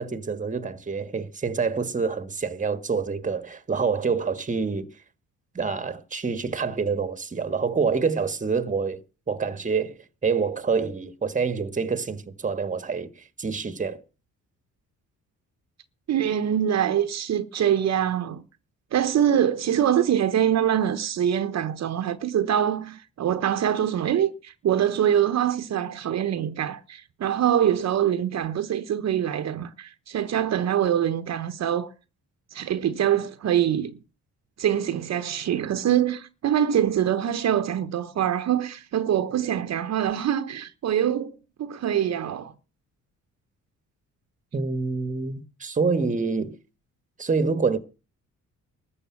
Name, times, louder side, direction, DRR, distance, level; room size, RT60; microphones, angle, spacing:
voice 1, 0.0-4.9 5.5-9.0 9.3-14.0 44.5-46.6 47.2-47.8, right 5 dB, 25° right, 1.4 m, -27 dB
voice 2, 16.1-18.4 18.9-31.9 32.5-34.0 34.6-41.3 41.6-42.5, right 10 dB, 60° right, 1.0 m, -24 dB
13.5 x 6.8 x 8.6 m
cardioid pair, 90°, 30 cm